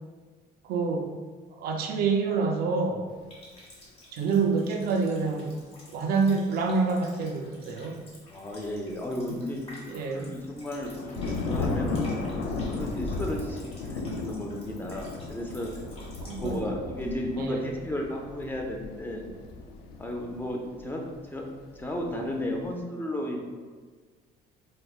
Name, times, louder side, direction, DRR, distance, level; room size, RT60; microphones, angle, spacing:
voice 1, 0.6-1.1 1.5-3.1 4.1-5.6 5.9-8.0 9.3-9.4 9.9-10.3 16.3-16.7 17.4-17.7, right 4 dB, 65° right, 3 dB, 0.5 m, -27 dB
Water tap faucet, 3.3-16.6, left 1 dB, 35° left, 1.2 m, -51 dB
voice 2, 8.3-9.6 10.1-15.7 16.4-19.2 20.0-21.0 21.3-21.4 21.8-23.4, left 1 dB, 10° left, 0 dB, 0.5 m, -34 dB
sound 1, 10.2-10.3 10.5-21.0 21.5-22.7, left 3 dB, 80° left, 0.4 m, -35 dB
4.7 x 2.1 x 2.3 m, 1.5 s
cardioid pair, 110°, 17 cm